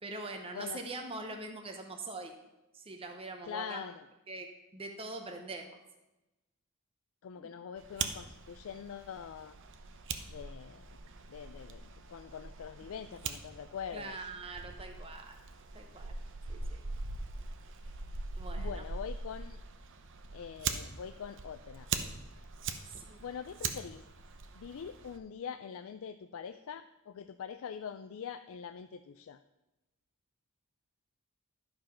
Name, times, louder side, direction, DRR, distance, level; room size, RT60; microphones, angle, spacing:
voice 1, 0.0-2.4 2.7-3.8 4.3-4.5 4.7-5.8 7.4-7.5 13.9-15.4 15.7-16.1 16.5-16.8 18.4-18.8 22.9-23.2, right 3 dB, 25° right, 3 dB, 0.8 m, -43 dB
voice 2, 3.5-4.0 7.2-9.6 10.3-10.8 11.3-14.2 18.5-19.6 20.3-21.9 23.2-24.0 24.6-29.4, left 7 dB, 65° left, 10 dB, 0.4 m, -43 dB
Fire, 7.8-25.2, right 5 dB, 60° right, 0.8 m, -42 dB
11.5 x 5.2 x 5.8 m, 1.0 s
head